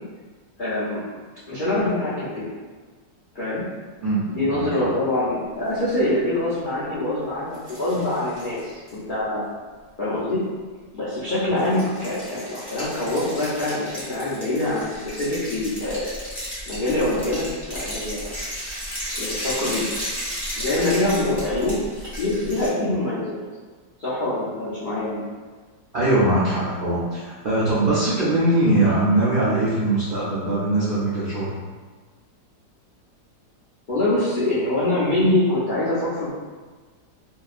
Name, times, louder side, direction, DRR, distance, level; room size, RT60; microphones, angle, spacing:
voice 1, 0.6-1.0 1.5-2.5 3.3-3.6 4.3-9.5 10.0-10.4 10.9-16.1 16.7-18.3 19.1-20.0 20.5-21.8 22.2-23.4 24.0-25.2 33.9-36.3, left 1 dB, 75° left, -11 dB, 0.4 m, -24 dB
voice 2, 4.0-4.9 25.9-31.5, right 2 dB, 75° right, -10 dB, 0.4 m, -21 dB
sound 1, 7.5-8.9 11.6-22.7, equal, 20° left, 0.7 m, -34 dB
2.8 x 2.3 x 2.4 m, 1.4 s
omnidirectional pair, 1.8 m